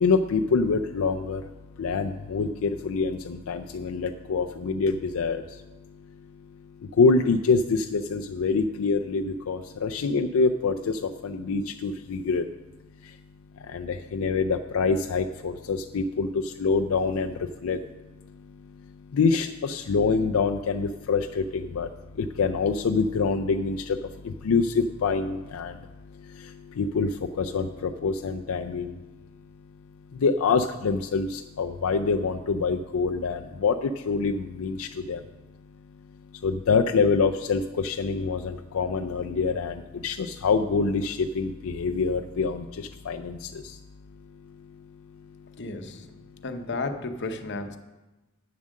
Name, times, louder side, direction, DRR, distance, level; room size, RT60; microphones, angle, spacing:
voice 1, 0.0-1.4 1.8-5.4 7.0-12.4 13.7-16.3 16.6-17.3 17.6-17.8 19.1-21.9 22.2-24.0 24.2-25.7 26.8-27.1 27.4-28.9 30.2-35.2 36.4-39.7 40.0-42.6 43.1-43.4, left 4 dB, 85° left, 5 dB, 0.4 m, -25 dB
voice 2, 45.6-46.0 46.4-47.8, left 3 dB, 55° left, 7 dB, 0.8 m, -33 dB
8.6 x 7.3 x 6.4 m, 1.1 s
head